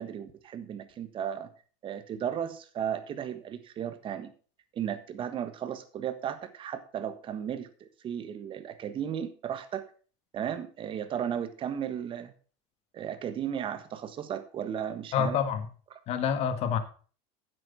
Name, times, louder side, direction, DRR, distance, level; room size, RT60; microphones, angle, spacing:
voice 1, 0.0-1.5 1.8-4.3 4.7-9.8 10.3-12.3 12.9-15.4, right 9 dB, 35° right, 11 dB, 1.4 m, -35 dB
voice 2, 15.1-15.7 16.1-16.8, left 7 dB, 45° left, 10 dB, 1.5 m, -27 dB
9.3 x 8.1 x 5.6 m, 0.39 s
supercardioid pair, 135°, 16 cm